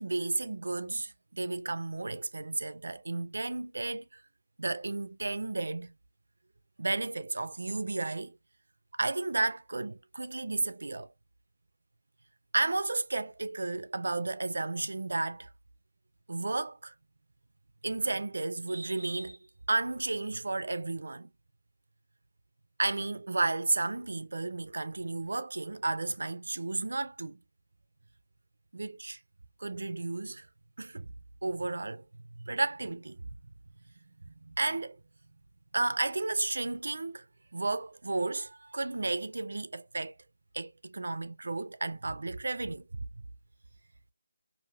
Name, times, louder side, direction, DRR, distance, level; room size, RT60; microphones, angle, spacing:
voice 1, 0.0-4.2 4.6-5.9 6.8-8.4 8.9-11.1 12.5-15.5 16.3-16.9 17.8-19.4 19.7-21.3 22.8-27.4 28.7-29.2 29.6-30.5 30.8-31.1 31.4-32.0 32.4-33.3 34.5-35.0 35.7-37.2 37.5-40.1 40.5-43.1, right 2 dB, 80° right, 0.4 m, -33 dB
3.3 x 2.5 x 2.3 m
figure-of-eight pair, 175°, 0 cm